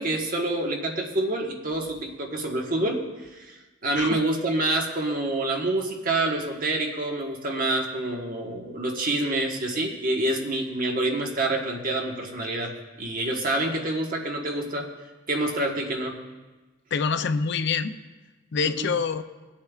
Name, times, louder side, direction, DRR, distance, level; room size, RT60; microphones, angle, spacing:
voice 1, 0.0-3.0 3.3-12.7 13.0-14.9 15.3-16.2 18.6-18.9, right 2 dB, 45° right, 1 dB, 1.4 m, -27 dB
voice 2, 16.9-18.0 18.5-19.2, left 5 dB, 65° left, 10 dB, 0.5 m, -26 dB
23.0 x 8.6 x 2.4 m, 1.2 s
head